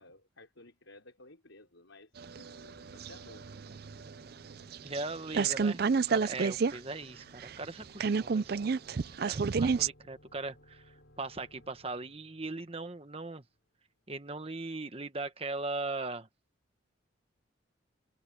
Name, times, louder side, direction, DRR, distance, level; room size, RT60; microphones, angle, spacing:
voice 1, 0.0-3.6, left 2 dB, 85° left, 5.0 m, -56 dB
sound 1, 2.1-13.7, equal, 65° left, 5.6 m, -62 dB
sound 2, 2.2-5.0 5.3-6.8 7.0-7.1 7.4-9.9, right 5 dB, 50° right, 0.4 m, -30 dB
voice 2, 4.8-8.6 9.2-13.4 14.1-16.3, right 3 dB, 30° right, 1.3 m, -39 dB
head